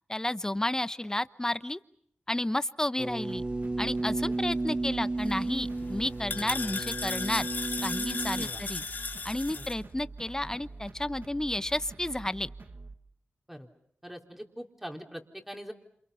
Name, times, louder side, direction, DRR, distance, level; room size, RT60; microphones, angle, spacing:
voice 1, 0.1-1.8 2.3-3.4 3.8-7.5 7.8-8.8 9.2-12.5, left 1 dB, 15° left, 14 dB, 1.0 m, -31 dB
sound 1, 3.0-8.5, right 2 dB, 25° right, 1.4 m, -33 dB
sound 2, 3.3-13.0, right 3 dB, 60° right, 1.7 m, -46 dB
sound 3, 5.2-9.7, left 4 dB, 55° left, 2.4 m, -36 dB
voice 2, 14.0-15.7, equal, 5° right, 3 dB, 4.0 m, -42 dB
28.5 x 28.0 x 5.7 m, 0.66 s
cardioid pair, 50°, 4 cm